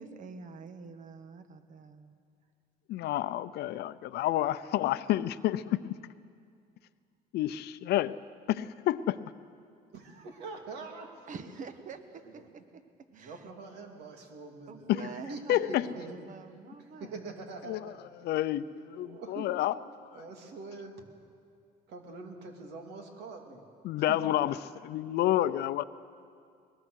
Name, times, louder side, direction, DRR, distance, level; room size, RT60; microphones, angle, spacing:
voice 1, 0.0-2.2 11.3-12.8 13.1-13.4 14.7-17.3, right 5 dB, 50° right, 9 dB, 1.4 m, -46 dB
voice 2, 2.9-5.9 7.3-8.2 8.5-9.2 14.9-15.0 15.5-15.9 17.7-17.9 18.2-19.7 20.0-20.2 23.8-24.6 24.8-25.8, left 13 dB, 75° left, 15 dB, 0.6 m, -29 dB
voice 3, 9.9-11.3 12.1-12.5 13.1-14.8 15.3-16.2 16.8-18.2 18.9-19.6 20.1-21.0 21.9-23.6 23.9-24.2, right 3 dB, 80° right, 3 dB, 2.8 m, -44 dB
21.0 x 20.5 x 6.5 m, 2.3 s
cardioid pair, 110°, 17 cm